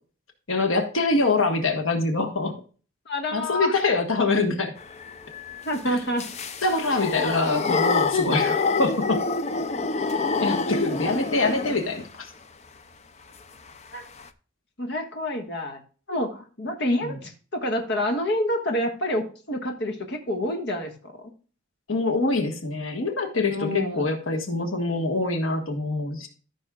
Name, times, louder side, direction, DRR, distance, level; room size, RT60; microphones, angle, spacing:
voice 1, 0.5-2.6 3.3-4.7 5.8-5.9 6.6-9.2 10.4-12.3 17.0-17.2 21.9-26.3, left 3 dB, 90° left, 5 dB, 1.4 m, -25 dB
voice 2, 3.0-3.7 5.6-6.3 8.3-8.4 13.9-14.0 14.8-15.8 16.1-21.1 23.5-24.1, left 1 dB, 55° left, 3 dB, 1.5 m, -28 dB
sound 1, 4.8-12.1 13.7-13.8 14.0-14.3, left 4 dB, 35° left, 0.5 m, -27 dB
14.0 x 6.2 x 2.3 m, 0.38 s
head